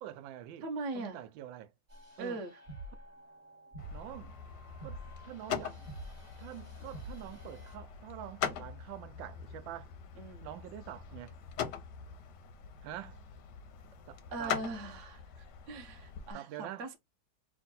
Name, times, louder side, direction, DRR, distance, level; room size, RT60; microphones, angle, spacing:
voice 1, 0.0-0.7 0.9-1.7 2.2-2.4 3.9-4.4 4.8-5.9 6.4-9.9 10.4-11.4 12.8-13.2 14.1-14.6 16.3-17.0, right 12 dB, 75° right, 1.2 m, -46 dB
voice 2, 0.6-1.2 2.2-2.5 10.2-10.5 14.3-15.2 15.7-17.0, right 3 dB, 45° right, 1.1 m, -40 dB
sound 1, 1.9-7.8, right 1 dB, 25° right, 1.3 m, -49 dB
sound 2, 3.8-16.3, left 8 dB, 70° left, 1.1 m, -42 dB
3.6 x 2.5 x 4.0 m
omnidirectional pair, 2.2 m